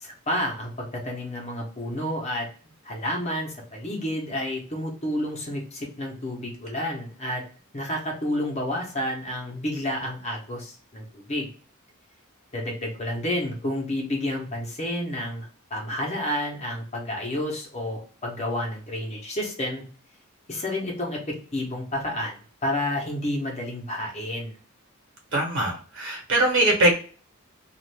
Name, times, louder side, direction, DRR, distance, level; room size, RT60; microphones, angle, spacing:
voice 1, 0.0-2.5 2.8-7.4 7.7-11.5 12.5-19.8 20.5-24.5, left 1 dB, 30° left, -1 dB, 0.9 m, -30 dB
voice 2, 25.3-26.9, right 1 dB, 65° right, 1 dB, 1.1 m, -22 dB
2.5 x 2.5 x 3.2 m, 0.39 s
head